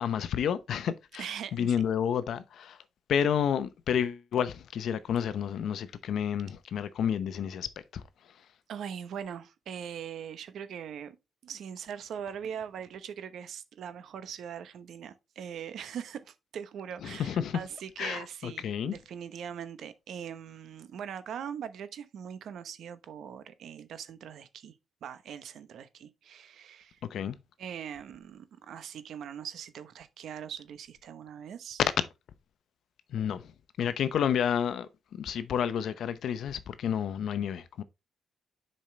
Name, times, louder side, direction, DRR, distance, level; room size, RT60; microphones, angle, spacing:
voice 1, 0.0-2.8 3.1-8.5 17.0-17.6 18.0-18.9 27.1-27.4 33.1-33.5 33.8-37.8, left 8 dB, 70° left, 0.7 m, -30 dB
voice 2, 1.2-1.8 8.7-11.2 11.4-27.0 27.6-31.8, right 8 dB, 70° right, 1.0 m, -41 dB
7.2 x 5.4 x 3.2 m
cardioid pair, 90°, 0 cm